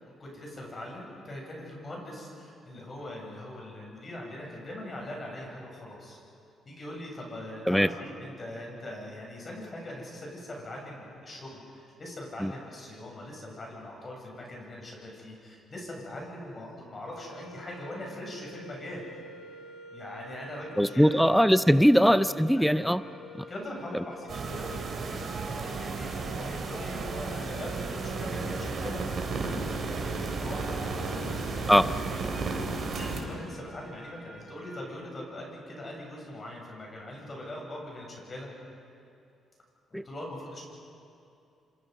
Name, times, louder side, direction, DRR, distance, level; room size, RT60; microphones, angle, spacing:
voice 1, 0.0-6.2 6.7-19.1 19.9-21.1 21.7-21.9 22.6-22.9 23.5-29.0 30.1-31.7 32.1-32.5 32.9-38.5 39.9-40.7, left 1 dB, 35° left, -1 dB, 7.9 m, -41 dB
sound 1, 17.1-34.9, left 2 dB, 15° left, 7.7 m, -48 dB
voice 2, 20.8-23.0 23.4-23.5 31.7-31.9 39.9-40.0, equal, ahead, 14 dB, 0.6 m, -21 dB
sound 2, 24.3-33.2, right 4 dB, 50° right, 3.8 m, -33 dB
27.0 x 26.5 x 5.5 m, 2.6 s
cardioid pair, 90°, 0 cm